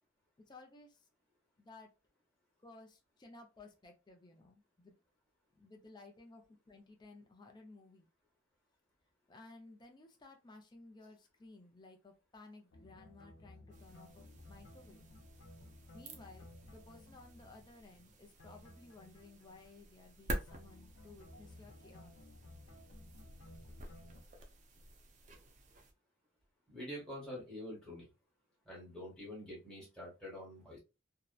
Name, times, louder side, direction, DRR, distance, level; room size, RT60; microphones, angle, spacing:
voice 1, 0.4-1.1 1.6-1.9 2.6-4.9 5.6-8.1 9.3-15.0 15.9-22.2, left 3 dB, 20° left, 3 dB, 0.4 m, -57 dB
sound 1, 12.7-20.2 20.5-24.2, left 1 dB, 80° left, 0.5 m, -57 dB
sound 2, 13.7-25.9, right 1 dB, 35° right, 0.4 m, -49 dB
voice 2, 26.7-28.1 28.6-30.8, left 1 dB, 5° left, -6 dB, 1.0 m, -46 dB
2.7 x 2.1 x 2.2 m, 0.29 s
head